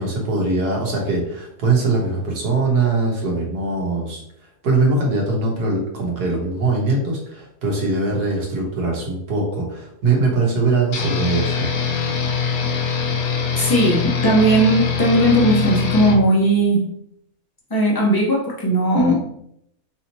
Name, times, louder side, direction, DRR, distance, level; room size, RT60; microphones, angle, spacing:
voice 1, 0.0-4.2 4.6-11.7, right 3 dB, 85° right, -1 dB, 1.6 m, -21 dB
sound 1, 10.9-16.2, left 5 dB, 70° left, 1.1 m, -23 dB
voice 2, 13.6-16.8 17.7-19.2, right 1 dB, 20° left, -3 dB, 0.8 m, -17 dB
4.8 x 2.9 x 2.7 m, 0.73 s
omnidirectional pair, 1.6 m